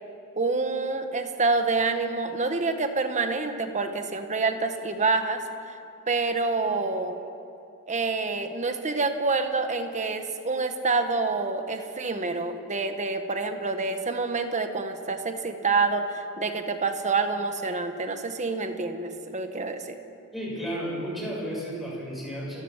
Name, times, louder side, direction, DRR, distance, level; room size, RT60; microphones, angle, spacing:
voice 1, 0.4-5.4 6.1-7.2 7.9-20.0, right 3 dB, 35° right, 6 dB, 1.4 m, -27 dB
voice 2, 20.3-22.6, equal, ahead, -5 dB, 7.3 m, -33 dB
29.0 x 13.5 x 7.5 m, 2.7 s
head